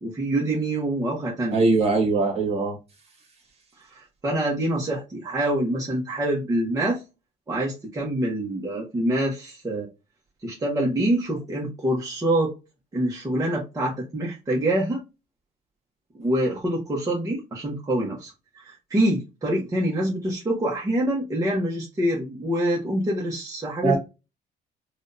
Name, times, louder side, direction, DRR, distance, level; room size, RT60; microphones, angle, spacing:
voice 1, 0.0-1.6 3.8-7.0 7.5-9.9 10.4-12.5 12.9-15.0 16.1-24.0, right 1 dB, 20° right, 1.2 m, -26 dB
voice 2, 1.5-2.8 23.8-24.0, right 3 dB, 35° right, 1.8 m, -21 dB
4.8 x 2.5 x 2.7 m
cardioid pair, 110°, 17 cm